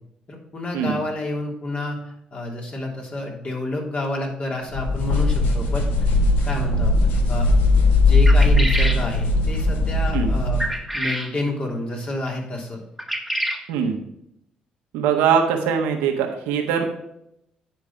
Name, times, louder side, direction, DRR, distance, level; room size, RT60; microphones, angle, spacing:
voice 1, 0.3-6.1 6.4-7.5 8.0-10.6 10.9-12.8, left 2 dB, 45° left, -1 dB, 3.1 m, -29 dB
sound 1, 4.7-10.7, left 2 dB, 75° left, 1.3 m, -19 dB
sound 2, 8.3-9.0 10.6-11.3 13.0-13.6, equal, ahead, 1.5 m, -27 dB
voice 2, 14.9-16.8, right 7 dB, 85° right, 4 dB, 1.3 m, -21 dB
9.6 x 4.7 x 5.7 m, 0.76 s
supercardioid pair, 55°, 3 cm